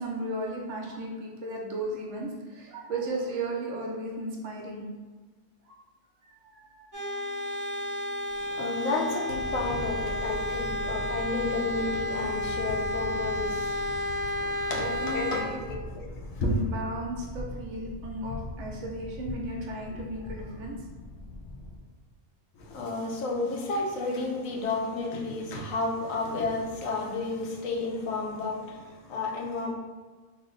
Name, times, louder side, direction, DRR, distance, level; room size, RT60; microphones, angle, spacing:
voice 1, 0.0-4.8 5.7-5.8 6.3-7.7 14.7-15.7 16.4-20.8, right 1 dB, 70° right, -2 dB, 0.9 m, -35 dB
sound 1, 6.9-15.4, left 1 dB, 25° right, 0.4 m, -32 dB
voice 2, 8.3-16.6 22.5-29.7, left 3 dB, 85° left, 0 dB, 1.0 m, -32 dB
sound 2, 9.3-21.8, left 2 dB, 60° left, 0.5 m, -41 dB
3.2 x 2.0 x 3.7 m, 1.4 s
omnidirectional pair, 1.4 m